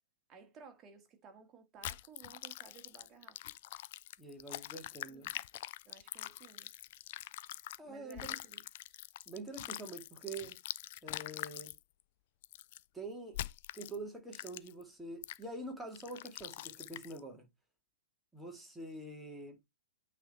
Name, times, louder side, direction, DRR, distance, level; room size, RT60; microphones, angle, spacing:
voice 1, 0.3-3.4 5.1-5.3 5.9-6.7 7.8-8.6, right 6 dB, 25° right, 1.9 m, -57 dB
sound 1, 1.8-7.8 8.1-11.8 12.4-12.8 13.3-14.0 14.3-14.8 15.2-15.4 15.9-17.2, left 15 dB, 45° left, 0.3 m, -44 dB
voice 2, 4.2-5.3 7.8-8.4 9.3-10.6 11.0-11.7 12.9-13.4 13.7-17.4 18.3-19.6, right 2 dB, 5° right, 2.0 m, -45 dB
8.7 x 3.5 x 4.3 m
figure-of-eight pair, 110°, 0 cm